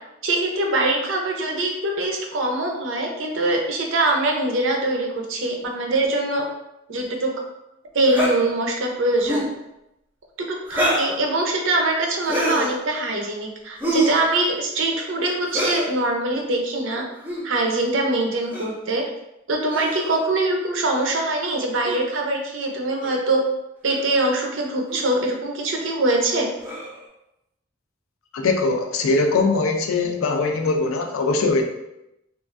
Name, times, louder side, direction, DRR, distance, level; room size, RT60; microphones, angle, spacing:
voice 1, 0.2-6.4 6.9-7.3 7.9-9.5 10.4-17.0 17.4-19.0 19.5-23.4 23.8-26.5, right 2 dB, 65° right, 1 dB, 0.6 m, -23 dB
sound 1, 8.1-8.3 9.2-9.5 10.7-11.1 12.2-12.7 13.8-14.2 15.5-15.9 17.2-17.4 18.5-18.7 19.7-20.2 21.8-22.0 23.0-23.2 23.8-24.1 24.9-25.1 26.6-27.0, right 1 dB, 10° right, 0.5 m, -25 dB
voice 2, 28.3-31.6, left 3 dB, 80° left, 4 dB, 0.4 m, -21 dB
3.0 x 2.4 x 2.5 m, 0.88 s
head